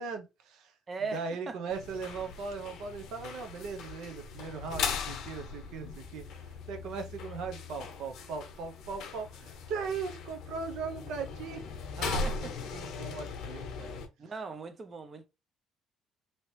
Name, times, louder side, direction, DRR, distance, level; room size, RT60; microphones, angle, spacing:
voice 1, 0.0-0.7 1.1-6.2 6.7-11.7 12.0-13.9, right 5 dB, 80° right, 0.7 m, -39 dB
voice 2, 0.9-1.6 12.2-12.7 14.2-15.3, right 4 dB, 35° right, 0.5 m, -39 dB
sound 1, 1.7-14.1, left 5 dB, 75° left, 0.7 m, -39 dB
2.9 x 2.8 x 3.1 m
cardioid pair, 100°, 0 cm